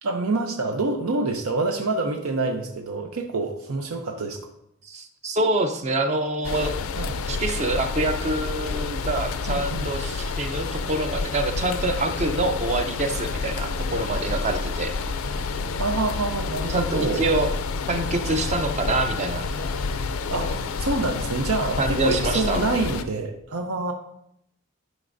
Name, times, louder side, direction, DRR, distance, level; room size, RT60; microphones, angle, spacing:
voice 1, 0.0-4.4 7.0-7.2 9.5-9.8 15.8-17.3 20.3-23.9, right 3 dB, 85° right, 4 dB, 0.7 m, -27 dB
voice 2, 4.8-6.7 7.3-14.9 16.7-17.6 17.9-19.5 21.8-22.6, right 2 dB, 30° right, 6 dB, 0.5 m, -26 dB
sound 1, 6.4-23.0, left 4 dB, 75° left, 0.4 m, -29 dB
11.0 x 5.2 x 2.6 m, 0.76 s
head